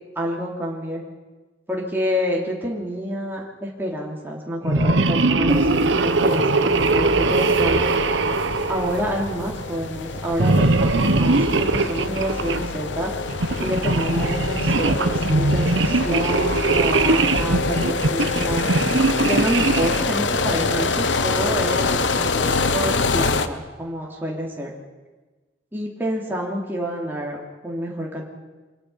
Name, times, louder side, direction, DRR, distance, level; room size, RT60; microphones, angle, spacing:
voice 1, 0.1-1.0 1.7-8.0 8.7-13.1 13.6-18.6 19.2-24.7 25.7-28.2, equal, 10° right, -3 dB, 3.0 m, -28 dB
sound 1, 4.6-9.5 10.3-12.7 13.3-20.1, right 3 dB, 80° right, 1.1 m, -21 dB
sound 2, 5.5-23.5, left 3 dB, 80° left, 1.1 m, -26 dB
25.0 x 20.5 x 5.8 m, 1.2 s
head